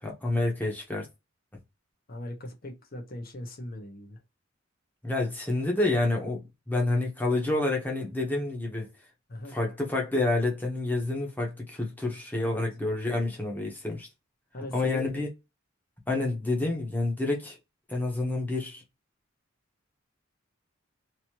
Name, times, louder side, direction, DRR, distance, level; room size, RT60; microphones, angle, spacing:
voice 1, 0.0-1.1 5.0-8.9 9.5-14.1 14.7-15.3 16.1-17.6 17.9-18.8, left 2 dB, 10° left, 0.9 m, -28 dB
voice 2, 2.1-4.2 9.3-9.6 12.4-12.6 14.5-15.1, left 1 dB, 45° left, 1.0 m, -40 dB
3.0 x 2.7 x 2.9 m
head